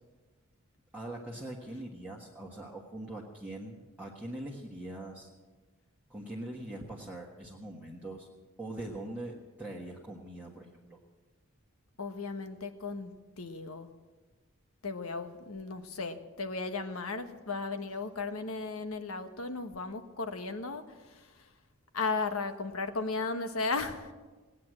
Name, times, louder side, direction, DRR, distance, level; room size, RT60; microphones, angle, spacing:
voice 1, 0.9-5.3 6.1-8.3 8.6-11.0, right 1 dB, 5° right, -4 dB, 1.5 m, -42 dB
voice 2, 12.0-13.1 13.4-13.9 14.8-21.3 21.9-24.1, left 3 dB, 80° left, 8 dB, 1.3 m, -35 dB
18.5 x 9.5 x 7.6 m, 1.3 s
head